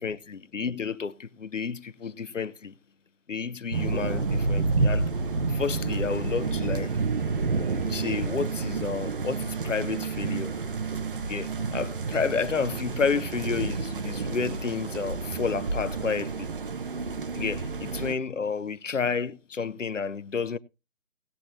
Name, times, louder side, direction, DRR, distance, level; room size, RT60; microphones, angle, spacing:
voice 1, 0.0-2.7 3.3-5.1 5.5-6.9 7.9-10.5 11.3-16.5 17.3-20.6, left 5 dB, 70° left, 0.9 m, -31 dB
sound 1, 3.7-18.1, right 4 dB, 40° right, 1.2 m, -29 dB
sound 2, 4.1-16.0, left 1 dB, 5° left, 0.6 m, -51 dB
18.5 x 8.4 x 2.8 m
figure-of-eight pair, 145°, 39 cm